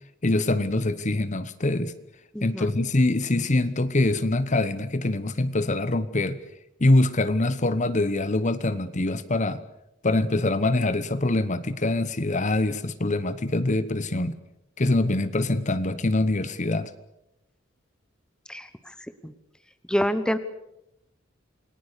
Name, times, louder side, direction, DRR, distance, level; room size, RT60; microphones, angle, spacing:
voice 1, 0.2-1.9 2.4-6.4 6.8-9.6 10.0-14.4 14.8-16.9, left 2 dB, 40° left, 13 dB, 1.0 m, -24 dB
voice 2, 2.3-2.7 18.5-18.7 19.2-19.3 19.9-20.4, equal, 5° left, 11 dB, 1.1 m, -26 dB
28.5 x 19.5 x 6.7 m, 0.85 s
head